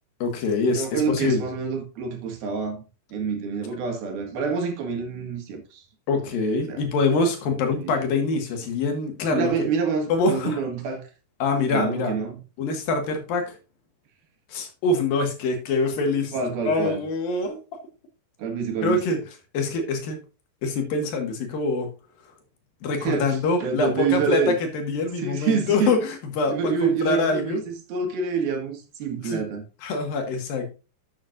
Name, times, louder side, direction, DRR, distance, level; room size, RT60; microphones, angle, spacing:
voice 1, 0.2-1.4 6.1-9.7 10.1-10.6 11.4-12.1 12.6-13.6 14.5-17.6 18.8-19.2 19.5-20.2 20.6-21.9 22.8-27.6 29.2-29.5 29.8-30.7, left 3 dB, 70° left, 3.4 m, -25 dB
voice 2, 0.7-2.8 3.1-5.9 6.6-6.8 7.7-7.9 9.3-11.0 11.7-12.4 16.3-17.1 18.4-19.2 23.0-24.6 25.2-26.0 26.5-29.6, right 5 dB, 75° right, 3.7 m, -27 dB
11.5 x 8.0 x 2.6 m
omnidirectional pair, 4.4 m